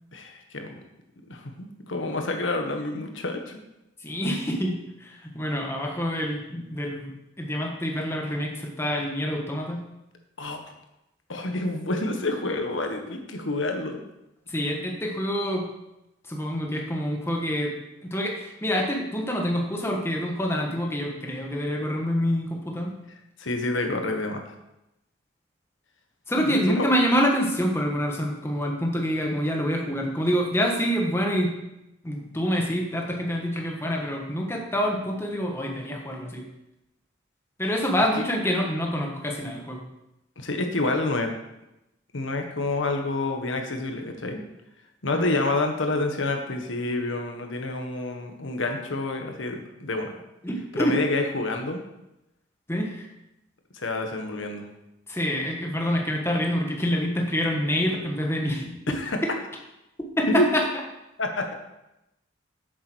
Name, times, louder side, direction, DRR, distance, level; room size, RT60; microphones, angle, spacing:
voice 1, 0.1-0.8 1.3-3.6 10.4-10.6 11.3-14.0 23.4-24.5 26.4-26.9 40.4-41.3 42.1-44.4 45.0-50.2 50.7-51.8 53.7-54.6 59.0-59.2 60.3-60.5 61.2-61.5, left 2 dB, 75° left, 4 dB, 1.4 m, -28 dB
voice 2, 4.0-7.1 7.4-9.8 14.5-15.7 16.3-17.7 18.0-22.9 26.3-31.6 32.0-36.4 37.6-39.8 45.1-45.2 50.4-51.0 52.7-53.1 55.1-58.8 60.2-60.6, equal, 10° left, 0 dB, 1.4 m, -26 dB
8.5 x 7.6 x 6.2 m, 0.91 s
head